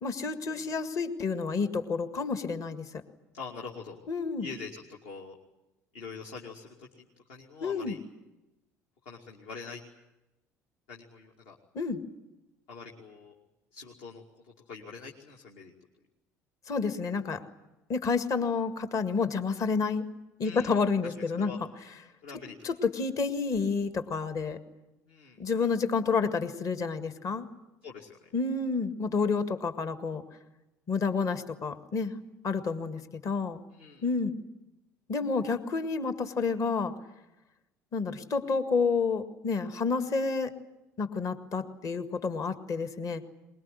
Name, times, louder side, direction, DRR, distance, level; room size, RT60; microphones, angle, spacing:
voice 1, 0.0-3.0 4.1-4.5 7.6-8.0 11.7-12.0 16.7-17.4 17.9-20.0 20.4-21.7 22.6-24.6 25.4-27.5 28.3-30.2 30.9-32.1 32.4-33.6 34.0-34.3 35.1-36.9 37.9-40.5 41.0-43.2, left 4 dB, 40° left, 10 dB, 1.9 m, -29 dB
voice 2, 3.3-4.0 4.4-5.4 5.9-8.0 9.0-9.8 10.9-11.6 12.7-13.3 13.7-15.7 20.4-21.6 22.2-22.5 25.1-25.4 27.8-28.2 33.7-34.1, left 5 dB, 60° left, -1 dB, 2.6 m, -44 dB
23.5 x 21.5 x 9.8 m, 0.97 s
figure-of-eight pair, 60°, 9 cm